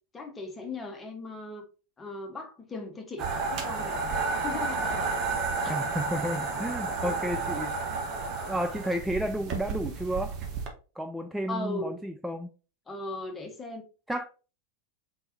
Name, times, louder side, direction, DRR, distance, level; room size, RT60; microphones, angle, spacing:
voice 1, 0.1-1.6 2.0-5.1 5.6-5.8 7.0-7.1 11.5-11.9 12.9-13.8, left 3 dB, 15° left, 1.0 m, -38 dB
sound 1, 3.2-10.7, right 4 dB, 35° right, 1.0 m, -31 dB
voice 2, 5.7-7.9 8.5-10.4 11.0-12.5 14.1-14.2, right 1 dB, 5° right, 0.3 m, -32 dB
3.8 x 3.7 x 2.7 m
figure-of-eight pair, 90°, 0 cm